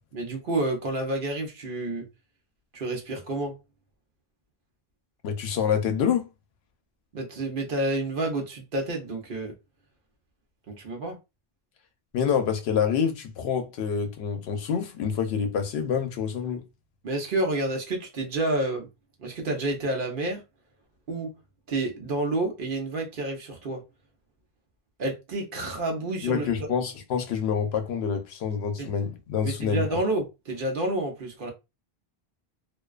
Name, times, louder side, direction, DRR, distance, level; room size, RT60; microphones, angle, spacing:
voice 1, 0.1-2.1 2.7-3.5 7.1-9.5 10.7-11.2 17.0-18.9 19.2-20.4 21.1-21.3 21.7-23.8 25.0-26.5 28.8-28.9 29.4-31.5, right 2 dB, 60° right, 0.9 m, -29 dB
voice 2, 5.2-6.3 12.1-16.6 26.2-30.0, left 7 dB, 80° left, 0.8 m, -27 dB
2.4 x 2.2 x 2.3 m
omnidirectional pair, 1.0 m